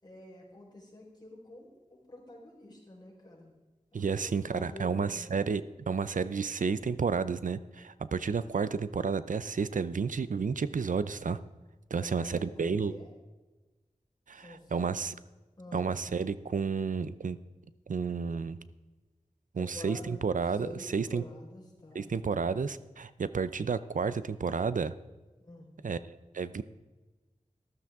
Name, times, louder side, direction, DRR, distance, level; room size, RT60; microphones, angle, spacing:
voice 1, 0.0-3.5 3.9-5.2 11.9-13.1 14.3-14.9 15.6-15.9 19.5-22.1 25.4-25.7, left 1 dB, 30° left, -4 dB, 4.5 m, -48 dB
voice 2, 3.9-11.4 11.9-12.9 14.3-15.1 15.7-17.4 17.9-18.6 19.5-21.2 21.9-24.9 25.8-26.0 26.3-26.6, right 5 dB, 80° right, 15 dB, 0.5 m, -31 dB
13.5 x 12.5 x 3.6 m, 1.2 s
wide cardioid pair, 60°, 13 cm